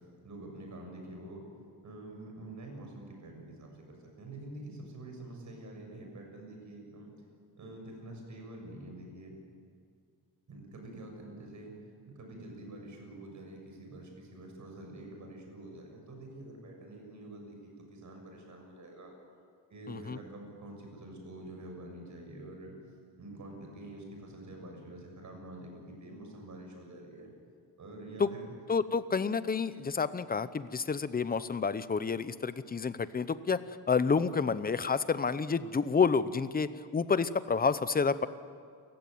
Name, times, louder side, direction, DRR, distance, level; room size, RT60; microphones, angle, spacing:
voice 1, 0.2-1.4 1.8-7.1 7.6-9.4 10.5-11.7 12.1-19.1 19.7-22.7 23.2-27.3 27.8-28.5, right 1 dB, 45° right, 2 dB, 6.9 m, -47 dB
voice 2, 19.9-20.2 28.2-28.3 28.7-38.3, left 5 dB, 20° left, 14 dB, 0.8 m, -29 dB
29.0 x 16.0 x 9.5 m, 2.2 s
cardioid pair, 150°, 41 cm